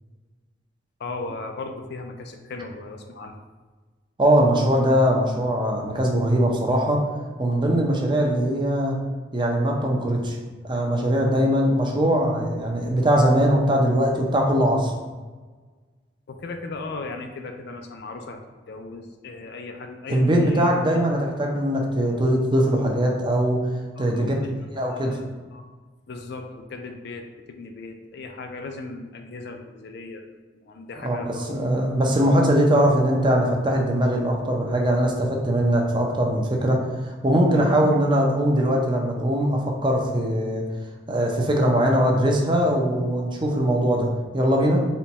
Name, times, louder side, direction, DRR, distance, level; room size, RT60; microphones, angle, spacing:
voice 1, 1.0-3.3 16.3-18.4 18.7-20.7 24.0-25.6 26.1-30.2 30.5-31.6 37.5-37.7, left 3 dB, 60° left, 4 dB, 0.4 m, -37 dB
voice 2, 4.2-7.0 7.4-9.0 9.3-10.4 10.6-14.9 20.1-23.6 24.0-24.3 24.8-25.2 31.0-40.6 41.1-44.8, equal, 25° right, 0 dB, 0.5 m, -21 dB
4.3 x 2.2 x 4.0 m, 1.3 s
head